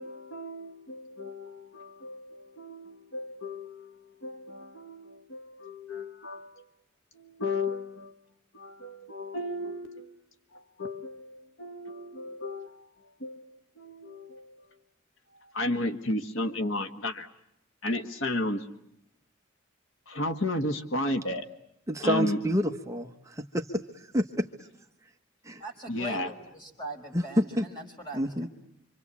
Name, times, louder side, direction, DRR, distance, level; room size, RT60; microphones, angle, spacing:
voice 1, 0.0-6.6 7.1-8.1 8.5-10.1 10.5-12.8 13.2-14.6 15.5-17.3 17.8-18.7 20.1-21.4 22.0-22.4 25.9-26.3, left 1 dB, 70° left, 7 dB, 1.7 m, -34 dB
voice 2, 21.9-24.5 25.4-25.6 27.1-27.7 28.1-28.5, equal, 15° right, 4 dB, 1.2 m, -28 dB
voice 3, 25.6-28.5, right 1 dB, 20° left, 3 dB, 5.1 m, -41 dB
26.5 x 26.0 x 8.4 m, 0.80 s
head